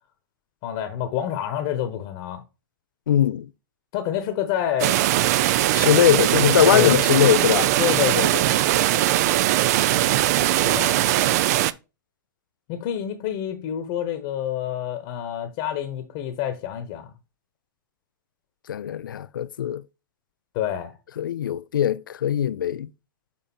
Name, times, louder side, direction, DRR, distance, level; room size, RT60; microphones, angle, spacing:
voice 1, 0.6-2.4 3.9-4.9 6.7-7.0 7.8-8.7 10.6-11.0 12.7-17.1 20.5-20.9, left 10 dB, 45° left, 1.1 m, -27 dB
voice 2, 3.1-3.5 5.7-7.7 18.7-19.8 21.2-22.9, left 10 dB, 75° left, 0.4 m, -20 dB
sound 1, 4.8-11.7, right 14 dB, 50° right, 0.4 m, -20 dB
7.4 x 3.6 x 4.2 m
hypercardioid pair, 110°, 11 cm